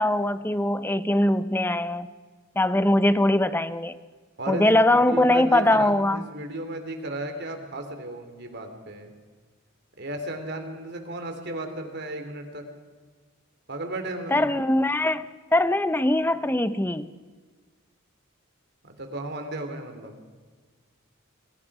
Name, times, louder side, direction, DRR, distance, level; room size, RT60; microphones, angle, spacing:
voice 1, 0.0-2.1 2.6-4.0 4.5-6.2 14.3-15.2 15.5-17.1, left 1 dB, 10° left, 13 dB, 0.7 m, -22 dB
voice 2, 4.4-9.1 10.0-12.6 13.7-14.5 18.8-20.2, right 1 dB, 55° right, 6 dB, 3.4 m, -34 dB
27.5 x 23.0 x 5.0 m, 1.5 s
head